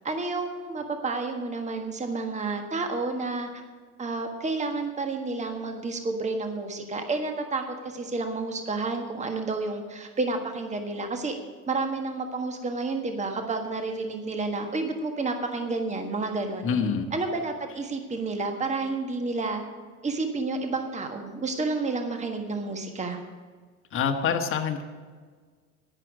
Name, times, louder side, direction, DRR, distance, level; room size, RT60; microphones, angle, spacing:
voice 1, 0.0-3.5 4.0-11.3 11.7-16.7 17.1-19.6 20.0-23.2, right 3 dB, 15° right, 5 dB, 1.5 m, -30 dB
voice 2, 16.6-17.1 23.9-24.8, left 6 dB, 30° left, 3 dB, 1.3 m, -26 dB
10.5 x 10.0 x 6.4 m, 1.5 s
figure-of-eight pair, 70°, 44 cm